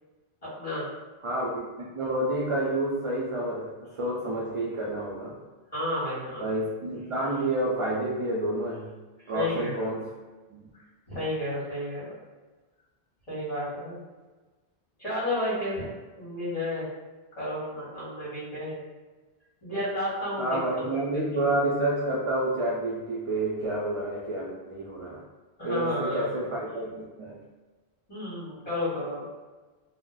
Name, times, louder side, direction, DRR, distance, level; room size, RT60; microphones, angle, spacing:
voice 1, 0.4-0.9 5.7-6.6 9.3-9.9 10.7-12.0 13.3-14.0 15.0-15.8 16.2-16.8 17.4-18.8 19.6-20.9 25.6-26.3 28.1-29.3, left 1 dB, 35° left, -8 dB, 1.2 m, -32 dB
voice 2, 1.2-1.7 1.9-5.3 6.4-8.9 9.3-10.1 10.5-10.7 20.4-25.2 25.6-27.4, right 1 dB, 50° right, -5 dB, 0.4 m, -29 dB
2.4 x 2.1 x 3.7 m, 1.3 s
omnidirectional pair, 1.1 m